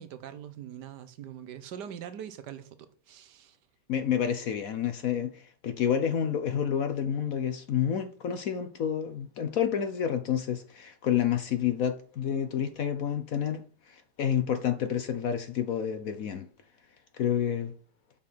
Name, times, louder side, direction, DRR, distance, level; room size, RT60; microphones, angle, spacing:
voice 1, 0.0-3.6, right 9 dB, 70° right, 1.3 m, -43 dB
voice 2, 3.9-13.6 13.9-16.5 17.2-17.7, left 9 dB, 60° left, 1.0 m, -29 dB
7.6 x 6.0 x 4.3 m
omnidirectional pair, 2.0 m